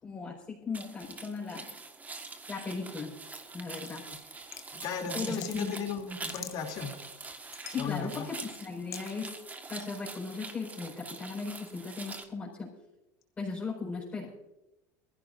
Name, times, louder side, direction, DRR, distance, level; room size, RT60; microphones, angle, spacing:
voice 1, 0.0-1.7 2.5-3.1 3.5-4.0 5.1-5.8 7.7-9.4 9.7-12.7 13.4-14.3, left 4 dB, 20° left, -6 dB, 4.8 m, -37 dB
sound 1, 0.7-12.2, right 3 dB, 20° right, 1.5 m, -44 dB
sound 2, 3.7-4.8 5.2-5.6 6.0-6.8 7.3-7.9 8.9-9.1, left 9 dB, 35° left, 1.1 m, -44 dB
voice 2, 4.8-6.9 7.8-8.2, left 6 dB, 50° left, 3 dB, 2.9 m, -36 dB
22.0 x 15.5 x 2.6 m, 0.96 s
supercardioid pair, 125°, 9 cm